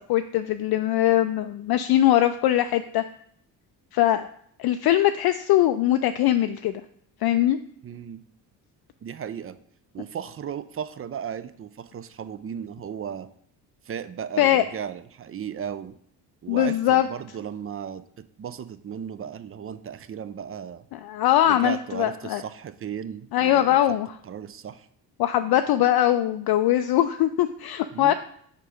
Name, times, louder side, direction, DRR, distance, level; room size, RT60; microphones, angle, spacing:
voice 1, 0.1-3.0 3.9-4.3 4.6-6.8 7.2-7.6 14.4-14.6 16.5-17.1 20.9-22.4 23.3-24.1 25.2-28.1, left 12 dB, 55° left, 9 dB, 0.5 m, -21 dB
voice 2, 7.8-8.2 9.0-9.6 9.9-13.3 13.9-15.9 16.4-18.0 18.4-20.8 21.4-23.8 24.2-24.9 27.9-28.1, right 8 dB, 30° right, 13 dB, 0.5 m, -35 dB
5.1 x 4.4 x 4.9 m, 0.68 s
hypercardioid pair, 50°, 48 cm